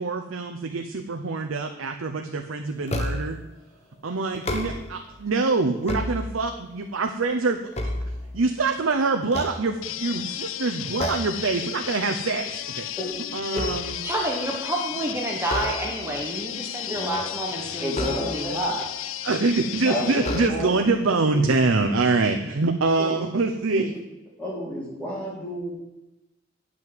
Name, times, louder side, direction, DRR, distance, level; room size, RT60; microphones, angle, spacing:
voice 1, 0.0-3.4 4.0-7.6 8.3-12.9 13.3-14.0 19.2-23.9, right 3 dB, 80° right, 4 dB, 0.7 m, -25 dB
sound 1, 2.9-3.5 4.3-5.1 5.6-6.7 7.2-8.7 9.2-10.2 11.0-11.5 11.9-12.1 12.5-14.2 15.4-16.2 17.9-18.7 19.5-19.6 20.2-21.0, left 1 dB, 30° left, 1.0 m, -32 dB
sound 2, 9.8-20.5, left 12 dB, 75° left, 0.4 m, -34 dB
voice 2, 14.0-18.9, right 1 dB, 10° right, -1 dB, 1.2 m, -29 dB
voice 3, 16.8-17.2 17.8-18.6 19.8-20.7 21.3-21.4 23.0-23.2 23.7-23.9 24.4-25.7, equal, 5° left, -6 dB, 3.4 m, -31 dB
9.1 x 6.1 x 7.7 m, 0.97 s
head